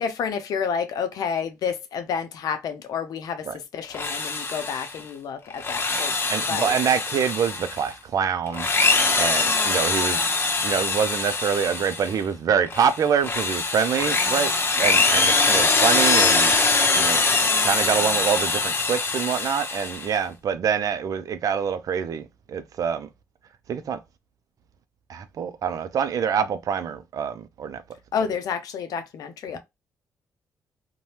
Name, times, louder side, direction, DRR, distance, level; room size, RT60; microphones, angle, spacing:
voice 1, 0.0-6.8 28.1-29.6, left 6 dB, 70° left, 0.5 m, -30 dB
Drill, 3.8-5.0 5.5-7.9 8.5-12.2 12.7-20.1, left 3 dB, 35° left, 0.8 m, -23 dB
voice 2, 6.3-8.7 9.2-10.3 10.6-16.5 16.9-17.2 17.6-23.1 23.7-24.0 25.1-27.8, right 7 dB, 60° right, 0.4 m, -25 dB
2.7 x 2.2 x 3.2 m
supercardioid pair, 60°, 7 cm